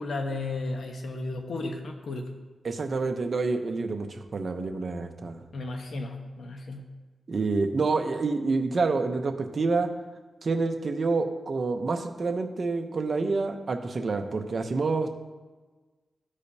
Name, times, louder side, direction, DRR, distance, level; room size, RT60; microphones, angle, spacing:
voice 1, 0.0-2.4 5.5-6.9, left 2 dB, 80° left, 3 dB, 1.0 m, -34 dB
voice 2, 2.6-5.4 7.3-9.9 10.4-15.1, right 3 dB, 50° right, 5 dB, 0.8 m, -28 dB
13.0 x 4.9 x 2.8 m, 1.3 s
wide cardioid pair, 95°, 0 cm